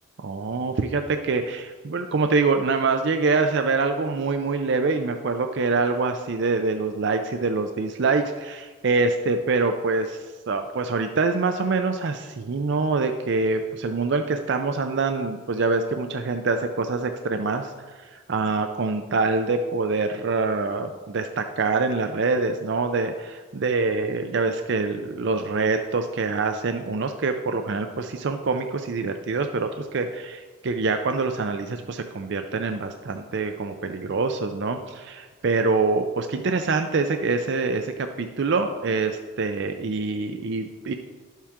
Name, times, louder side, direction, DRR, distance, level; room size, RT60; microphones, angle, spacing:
voice 1, 0.2-40.9, right 3 dB, 55° right, 6 dB, 0.4 m, -25 dB
11.5 x 7.3 x 3.6 m, 1.4 s
head